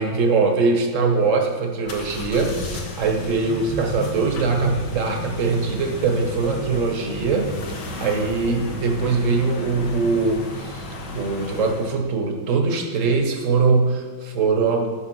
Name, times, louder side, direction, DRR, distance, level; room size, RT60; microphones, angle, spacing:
voice 1, 0.0-7.5 8.0-14.9, right 4 dB, 45° right, 3 dB, 1.6 m, -22 dB
sound 1, 1.9-12.0, left 2 dB, 60° left, 1.8 m, -33 dB
11.5 x 6.3 x 6.3 m, 1.4 s
omnidirectional pair, 2.2 m